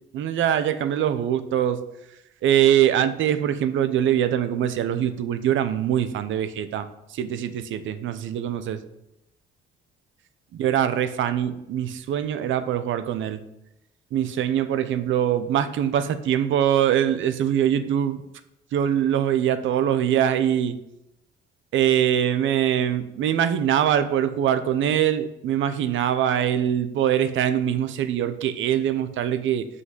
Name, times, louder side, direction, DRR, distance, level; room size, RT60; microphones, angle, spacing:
voice 1, 0.1-1.8 2.4-8.8 10.5-13.4 14.1-18.2 18.7-20.7 21.7-29.7, right 10 dB, 75° right, 11 dB, 0.7 m, -23 dB
5.7 x 5.4 x 6.2 m, 0.84 s
cardioid pair, 90°, 20 cm